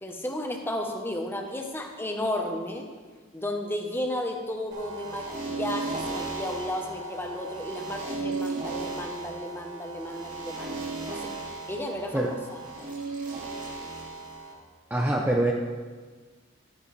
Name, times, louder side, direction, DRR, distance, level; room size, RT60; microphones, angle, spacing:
voice 1, 0.0-2.9 3.3-11.3 11.7-12.4, left 1 dB, 10° left, 3 dB, 0.9 m, -33 dB
sound 1, 4.7-14.5, right 3 dB, 40° right, 2.0 m, -35 dB
voice 2, 14.9-15.5, right 1 dB, 10° right, -1 dB, 0.6 m, -24 dB
12.5 x 10.0 x 3.3 m, 1.4 s
head